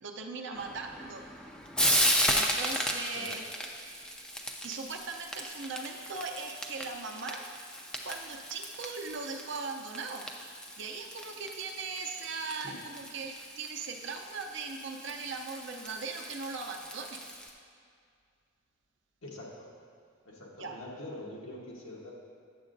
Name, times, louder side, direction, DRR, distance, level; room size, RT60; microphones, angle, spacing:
voice 1, 0.0-1.2 2.3-3.5 3.8-4.1 4.6-7.4 8.0-10.3 10.8-17.2 20.6-20.8, right 4 dB, 60° right, 3 dB, 0.6 m, -39 dB
Frying (food), 0.5-17.5, equal, 5° left, 0.4 m, -35 dB
voice 2, 19.2-19.7 20.2-22.1, left 1 dB, 80° left, -3 dB, 1.3 m, -44 dB
9.2 x 7.2 x 2.6 m, 2.3 s
head